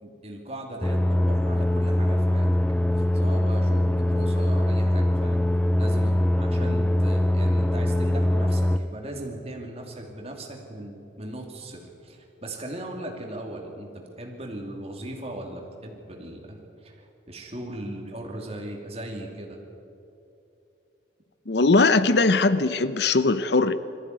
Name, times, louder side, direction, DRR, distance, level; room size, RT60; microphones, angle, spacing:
voice 1, 0.0-2.5 3.1-5.4 5.8-19.6, right 1 dB, 30° right, 1 dB, 2.8 m, -38 dB
sound 1, 0.8-8.8, left 1 dB, 5° left, 0.4 m, -22 dB
voice 2, 21.5-23.7, left 3 dB, 65° left, 13 dB, 0.7 m, -20 dB
21.0 x 14.5 x 9.4 m, 2.8 s
head